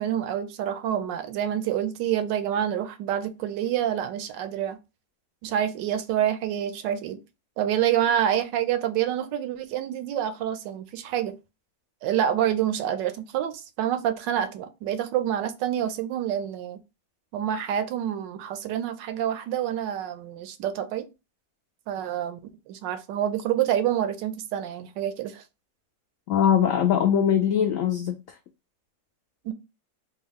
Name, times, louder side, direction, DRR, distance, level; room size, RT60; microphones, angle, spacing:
voice 1, 0.0-4.8 5.4-7.2 7.6-11.4 12.0-16.8 17.3-21.1 21.9-22.4 22.7-25.4 29.4-29.5, right 10 dB, 80° right, 1.2 m, -27 dB
voice 2, 26.3-28.4, left 9 dB, 85° left, 0.7 m, -22 dB
3.6 x 2.3 x 3.4 m
omnidirectional pair, 1.9 m